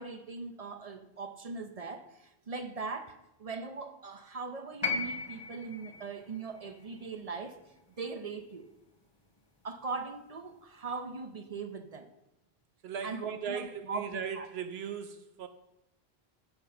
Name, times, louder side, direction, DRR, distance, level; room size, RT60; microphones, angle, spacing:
voice 1, 0.0-7.6 8.0-8.7 9.6-12.1 13.0-14.5, right 4 dB, 40° right, 7 dB, 0.7 m, -40 dB
sound 1, 4.8-9.0 10.2-10.3, left 4 dB, 25° left, 1.0 m, -38 dB
voice 2, 12.8-15.5, right 7 dB, 80° right, 9 dB, 0.9 m, -38 dB
9.8 x 5.6 x 6.8 m, 0.92 s
omnidirectional pair, 1.0 m